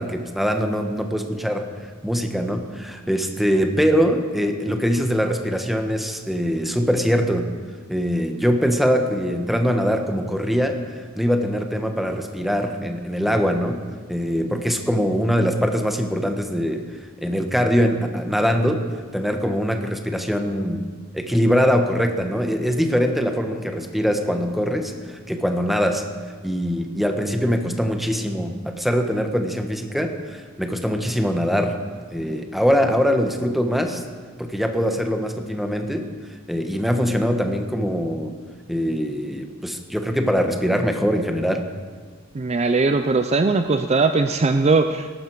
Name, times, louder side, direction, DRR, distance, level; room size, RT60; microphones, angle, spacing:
voice 1, 0.0-7.5 7.9-13.8 14.1-16.8 17.2-18.8 19.1-20.8 21.1-26.0 26.4-31.8 32.1-34.0 34.4-36.0 36.5-38.4 38.7-41.6, equal, ahead, 4 dB, 1.1 m, -22 dB
voice 2, 42.3-45.1, right 3 dB, 30° right, 8 dB, 0.5 m, -19 dB
17.5 x 12.0 x 4.7 m, 1.5 s
head